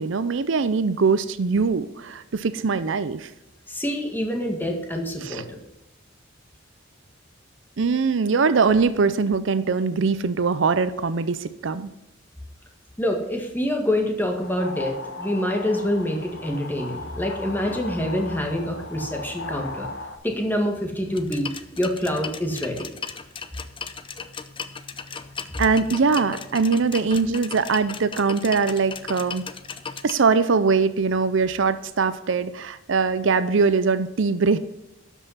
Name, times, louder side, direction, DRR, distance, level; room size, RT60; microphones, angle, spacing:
voice 1, 0.0-3.3 5.2-5.4 7.8-11.9 25.6-29.4 30.0-34.6, right 4 dB, 65° right, 13 dB, 0.6 m, -22 dB
voice 2, 3.7-5.6 13.0-19.9 20.2-21.5 21.8-22.9, left 1 dB, 10° left, 2 dB, 1.8 m, -26 dB
sound 1, 14.2-20.2, left 3 dB, 60° left, 1.2 m, -37 dB
sound 2, 21.1-30.1, left 6 dB, 25° left, 0.6 m, -36 dB
12.0 x 5.5 x 5.6 m, 0.95 s
head